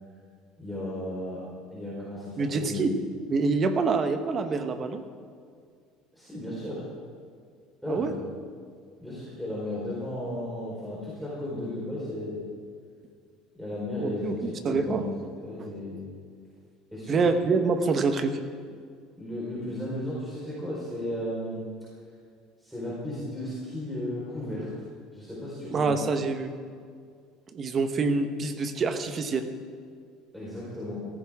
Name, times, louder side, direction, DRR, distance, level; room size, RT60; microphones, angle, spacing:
voice 1, 0.6-1.4 1.7-3.0 6.2-6.8 7.8-8.2 9.0-12.5 13.5-15.1 15.4-16.1 16.9-17.2 19.2-21.6 22.6-24.7 25.1-26.0 30.3-31.1, left 1 dB, ahead, -8 dB, 4.4 m, -34 dB
voice 2, 2.4-2.9 3.3-5.0 7.9-8.1 14.0-15.0 15.6-15.7 17.1-18.3 25.6-26.5 27.5-29.5, right 4 dB, 35° right, 8 dB, 1.2 m, -26 dB
17.5 x 15.0 x 3.7 m, 2.1 s
cardioid pair, 125°, 0 cm